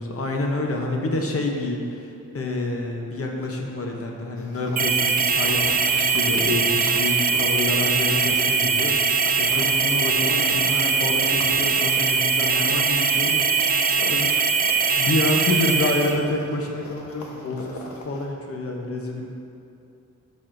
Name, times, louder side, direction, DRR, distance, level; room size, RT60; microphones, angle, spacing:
voice 1, 0.0-13.5 14.0-14.4 15.0-19.2, left 2 dB, 50° left, 0 dB, 0.7 m, -28 dB
sound 1, 4.4-18.3, left 2 dB, 75° left, 0.9 m, -40 dB
sound 2, 4.8-16.2, right 5 dB, 30° right, 0.4 m, -21 dB
11.5 x 6.1 x 2.5 m, 2.6 s
wide cardioid pair, 175°, 29 cm